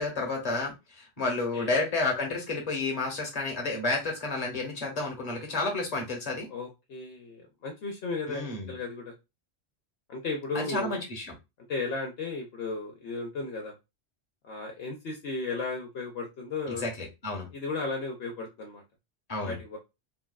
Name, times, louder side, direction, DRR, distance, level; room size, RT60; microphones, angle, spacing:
voice 1, 0.0-6.5 8.3-8.7 10.5-11.3 16.8-17.5 19.3-19.6, left 3 dB, 35° left, 0 dB, 1.1 m, -31 dB
voice 2, 1.3-1.7 6.5-9.1 10.1-11.0 11.7-13.7 14.4-16.9 17.5-18.8 19.5-19.8, left 3 dB, 65° left, 2 dB, 0.9 m, -35 dB
3.9 x 2.3 x 2.2 m, 0.24 s
omnidirectional pair, 1.1 m